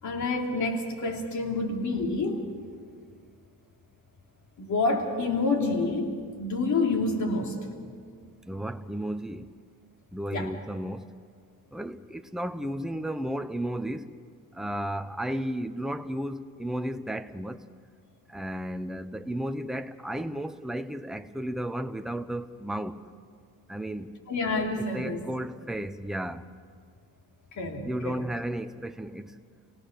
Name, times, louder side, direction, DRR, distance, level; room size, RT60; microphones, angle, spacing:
voice 1, 0.0-2.4 4.6-7.6 10.3-10.5 24.3-25.2 27.6-28.3, left 3 dB, 55° left, 3.0 m, -28 dB
voice 2, 8.5-9.5 10.1-11.1 11.7-14.1 14.5-17.7 18.3-23.0 23.7-24.1 24.8-26.5 27.8-29.3, right 1 dB, ahead, 0.7 m, -33 dB
29.0 x 18.0 x 6.5 m
cardioid pair, 135°, 35 cm